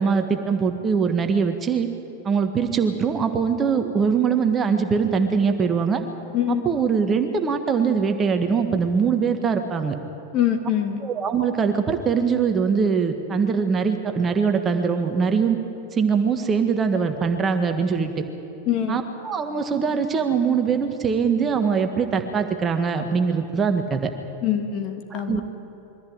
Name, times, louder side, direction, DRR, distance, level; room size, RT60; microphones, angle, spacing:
voice 1, 0.0-1.9 2.2-6.0 6.5-10.0 11.0-15.6 15.9-18.2 18.9-24.1 25.1-25.4, right 6 dB, 20° right, 6 dB, 1.5 m, -22 dB
voice 2, 6.3-6.8 10.3-11.0 18.7-19.0 24.4-25.4, left 9 dB, 35° left, 4 dB, 2.3 m, -24 dB
22.5 x 15.0 x 8.9 m, 2.8 s
figure-of-eight pair, 90°, 0 cm